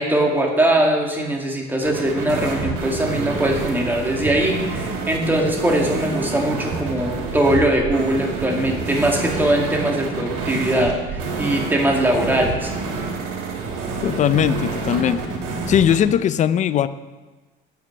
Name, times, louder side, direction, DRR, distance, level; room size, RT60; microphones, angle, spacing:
voice 1, 0.0-12.7, right 1 dB, 10° right, 0 dB, 2.1 m, -21 dB
sound 1, 1.8-16.0, right 4 dB, 80° right, 3.1 m, -28 dB
voice 2, 14.0-15.2 15.7-16.9, left 9 dB, 35° left, 14 dB, 0.5 m, -19 dB
9.3 x 9.0 x 7.5 m, 1.2 s
cardioid pair, 140°, 21 cm